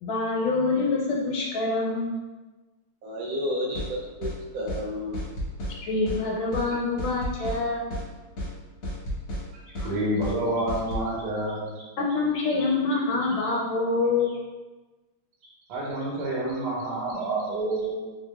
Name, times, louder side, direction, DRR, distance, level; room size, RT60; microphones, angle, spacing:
voice 1, 0.0-2.1 5.8-7.9 12.0-14.3, left 3 dB, 75° left, -2 dB, 1.3 m, -26 dB
voice 2, 3.0-5.3, equal, 70° right, -4 dB, 1.2 m, -31 dB
sound 1, 3.7-3.9 4.2-4.4 4.7-4.8 5.1-5.8 6.1-6.2 6.5-6.7 7.0-7.6 7.9-8.1 8.4-8.5 8.8-9.4 9.7-9.9 10.2-10.4 10.7-11.1, equal, 55° left, 1.1 m, -32 dB
voice 3, 9.8-11.7 15.7-17.9, right 1 dB, 90° right, -6 dB, 1.7 m, -28 dB
3.8 x 3.2 x 2.2 m, 1.2 s
omnidirectional pair, 2.4 m